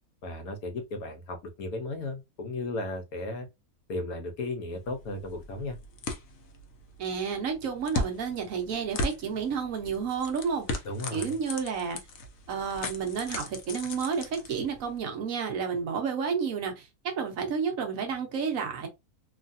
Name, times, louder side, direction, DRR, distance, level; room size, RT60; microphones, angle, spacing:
voice 1, 0.2-3.5 3.9-5.8 10.8-11.4, left 2 dB, 80° left, 1.2 m, -35 dB
sound 1, 4.7-15.0, left 2 dB, 60° left, 0.9 m, -38 dB
voice 2, 7.0-10.8 11.1-12.0 12.5-18.9, right 6 dB, 70° right, 1.2 m, -31 dB
3.2 x 2.4 x 2.6 m
omnidirectional pair, 1.5 m